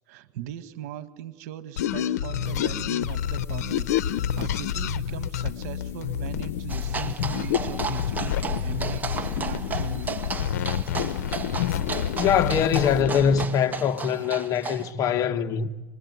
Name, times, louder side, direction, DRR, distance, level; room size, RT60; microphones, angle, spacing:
voice 1, 0.1-10.4, right 11 dB, 70° right, 1.7 m, -39 dB
sound 1, 1.8-13.5, left 10 dB, 85° left, 0.8 m, -28 dB
sound 2, 3.0-13.0, left 6 dB, 25° left, 4.6 m, -42 dB
sound 3, 6.7-14.9, right 5 dB, 20° right, 1.9 m, -34 dB
voice 2, 12.1-15.7, left 7 dB, 45° left, 1.4 m, -23 dB
26.5 x 21.5 x 9.6 m
supercardioid pair, 110°, 9 cm